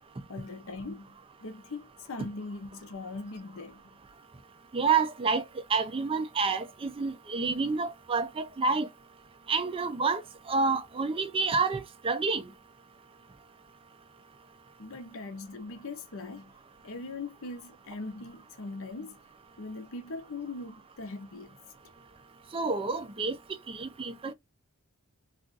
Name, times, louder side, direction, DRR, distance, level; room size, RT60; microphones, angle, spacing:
voice 1, 0.3-1.1 1.4-3.8 14.8-16.5 16.8-19.2 19.6-21.6, left 3 dB, 65° left, 0.7 m, -40 dB
voice 2, 4.7-5.4 5.7-8.9 9.5-10.2 10.5-12.5 22.5-23.4 23.7-24.3, right 4 dB, 25° right, 0.4 m, -28 dB
2.4 x 2.4 x 3.7 m
head